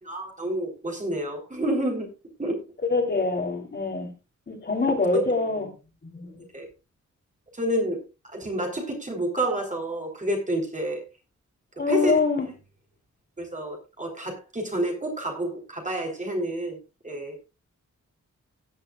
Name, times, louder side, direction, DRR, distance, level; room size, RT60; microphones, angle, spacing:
voice 1, 0.0-2.1 2.4-2.6 5.1-5.2 6.5-6.7 7.5-11.0 11.9-12.2 13.4-16.8 17.0-17.4, right 1 dB, 25° right, 1 dB, 3.7 m, -29 dB
voice 2, 2.9-4.1 4.5-5.7 6.0-6.4 11.8-12.5, left 3 dB, 35° left, 1 dB, 3.5 m, -25 dB
17.0 x 10.5 x 2.4 m, 0.29 s
wide cardioid pair, 180°, 30 cm